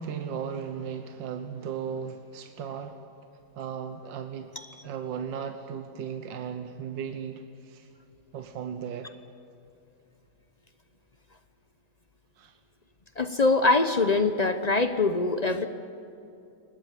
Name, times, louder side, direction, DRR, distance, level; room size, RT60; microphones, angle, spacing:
voice 1, 0.0-3.0 3.6-4.5 4.8-7.9 8.3-9.1 12.4-12.6, right 7 dB, 80° right, 7 dB, 1.7 m, -36 dB
voice 2, 13.2-15.6, left 3 dB, 45° left, 9 dB, 0.5 m, -23 dB
21.5 x 18.5 x 9.2 m, 2.7 s
omnidirectional pair, 2.0 m